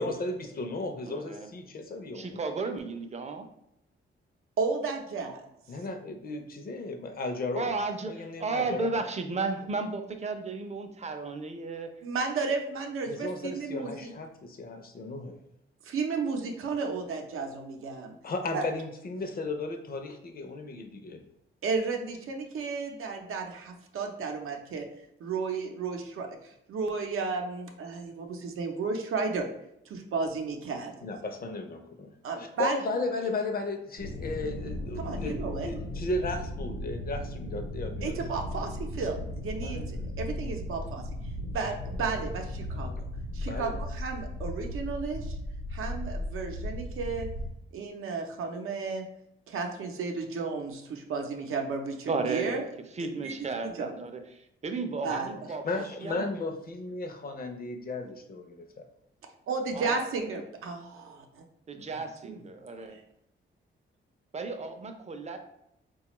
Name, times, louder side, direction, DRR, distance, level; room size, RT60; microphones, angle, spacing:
voice 1, 0.0-2.4 5.7-7.7 8.1-9.0 13.1-15.4 17.9-21.2 31.0-32.1 32.4-38.1 39.6-39.9 43.4-43.8 55.0-55.2 55.6-58.8 61.7-61.8, left 2 dB, 45° left, 5 dB, 0.5 m, -35 dB
voice 2, 1.0-1.5 2.1-3.5 7.6-11.9 52.1-52.6 52.9-56.3 59.7-60.0 61.7-63.0 64.3-65.4, right 4 dB, 35° right, 6 dB, 0.5 m, -34 dB
voice 3, 4.6-5.5 12.0-14.1 15.8-18.1 18.5-18.7 21.6-24.9 25.2-29.5 29.9-30.9 32.2-32.8 35.0-35.7 38.0-41.1 41.5-43.1 43.3-45.4 45.7-47.3 47.7-49.1 49.5-52.7 53.1-53.3 53.6-53.9 55.0-55.3 59.5-61.4 62.2-62.4 62.9-63.0, right 4 dB, 85° right, 3 dB, 0.6 m, -33 dB
sound 1, 34.0-47.5, left 1 dB, 75° left, 0.8 m, -36 dB
4.1 x 2.3 x 2.9 m, 0.77 s
cardioid pair, 105°, 21 cm